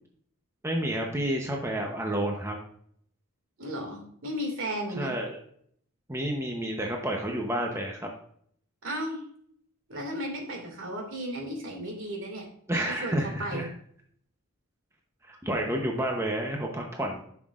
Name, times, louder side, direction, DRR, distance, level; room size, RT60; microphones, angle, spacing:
voice 1, 0.6-2.6 5.0-5.4 6.1-8.1 12.7-13.7 15.3-17.2, right 1 dB, 10° right, 0 dB, 0.8 m, -30 dB
voice 2, 3.6-5.1 8.8-9.2 9.9-12.5 12.8-13.7, equal, 65° right, 2 dB, 2.3 m, -34 dB
11.0 x 5.9 x 2.5 m, 0.63 s
head